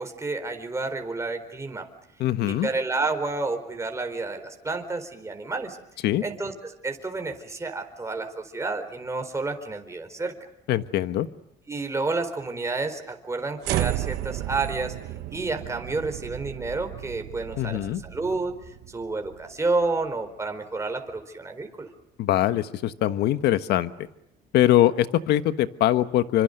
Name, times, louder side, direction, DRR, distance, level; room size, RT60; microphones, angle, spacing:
voice 1, 0.0-1.9 2.4-5.8 6.2-10.5 11.7-15.0 15.3-21.9, right 3 dB, 15° right, 5 dB, 4.3 m, -30 dB
voice 2, 2.2-2.7 6.0-6.2 10.7-11.3 17.6-18.0 22.2-24.1 24.5-26.4, left 13 dB, 80° left, 12 dB, 1.4 m, -22 dB
sound 1, 13.6-19.9, right 15 dB, 85° right, 1.4 m, -33 dB
27.5 x 26.0 x 6.7 m, 0.84 s
cardioid pair, 110°, 17 cm